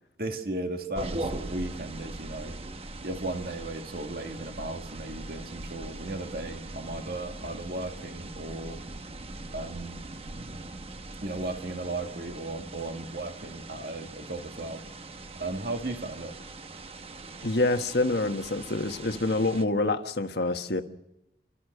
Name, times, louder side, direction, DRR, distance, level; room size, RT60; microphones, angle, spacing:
voice 1, 0.2-2.5 3.0-8.8 9.5-10.0 11.2-14.8 15.4-16.3, right 2 dB, 55° right, 1.8 m, -35 dB
sound 1, 1.0-19.7, right 2 dB, 35° right, 0.9 m, -41 dB
voice 2, 17.4-20.8, left 2 dB, 65° left, 1.4 m, -26 dB
30.0 x 13.0 x 6.7 m
head